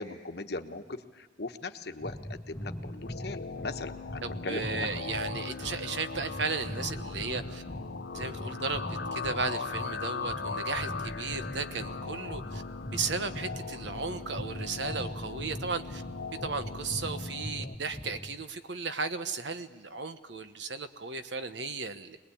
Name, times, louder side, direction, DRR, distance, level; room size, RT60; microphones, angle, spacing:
voice 1, 0.0-4.9, left 3 dB, 60° left, 7 dB, 1.2 m, -39 dB
sound 1, 2.0-18.4, equal, 15° left, 0.7 m, -41 dB
sound 2, 2.8-17.8, left 4 dB, 80° left, 0.7 m, -39 dB
voice 2, 4.2-7.6 8.1-12.6 12.9-16.0 16.4-22.2, right 4 dB, 80° right, 9 dB, 1.2 m, -35 dB
24.5 x 20.0 x 8.6 m, 1.3 s
head